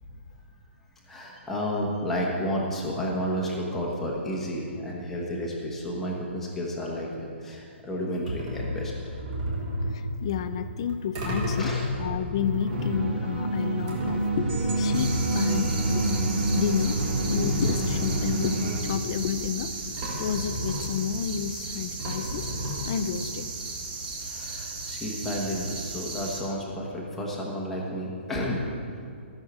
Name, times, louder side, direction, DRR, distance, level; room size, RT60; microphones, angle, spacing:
voice 1, 1.1-8.9 9.8-9.9 11.6-11.9 24.3-28.6, equal, 5° left, -4 dB, 1.2 m, -31 dB
sound 1, 8.3-16.1 16.4-16.5 17.0-18.6 19.6-19.7 20.0-21.4 22.0-23.3, left 1 dB, 20° right, 1.7 m, -33 dB
voice 2, 9.9-11.7 12.0-16.0 16.5-19.7 20.2-22.5 22.8-23.5, left 8 dB, 25° left, 11 dB, 0.4 m, -31 dB
sound 2, 12.7-18.8, right 2 dB, 75° right, 3.0 m, -27 dB
sound 3, 14.9-26.4, right 3 dB, 45° right, 2.9 m, -36 dB
14.0 x 6.5 x 7.4 m, 2.3 s
hypercardioid pair, 175°, 7 cm